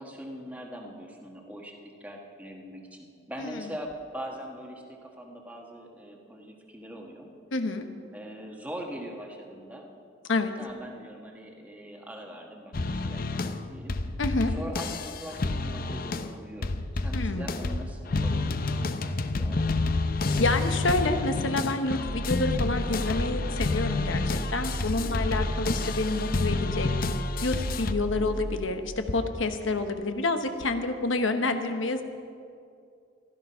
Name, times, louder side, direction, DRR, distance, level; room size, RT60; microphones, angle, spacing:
voice 1, 0.0-7.3 8.1-9.9 10.6-14.0 14.5-20.0 20.4-20.5 25.0-25.3 28.1-28.4 31.3-31.6, equal, 10° right, 0 dB, 1.4 m, -42 dB
voice 2, 7.5-7.9 10.3-10.5 14.2-14.5 17.1-17.5 20.4-26.9 27.4-32.0, left 3 dB, 80° left, 7 dB, 1.1 m, -28 dB
sound 1, 12.7-13.6 13.9-16.4 16.6-27.9, left 3 dB, 50° left, 0.6 m, -29 dB
sound 2, 22.1-28.6, right 1 dB, 25° right, 0.6 m, -34 dB
15.5 x 13.0 x 5.6 m, 2.4 s
head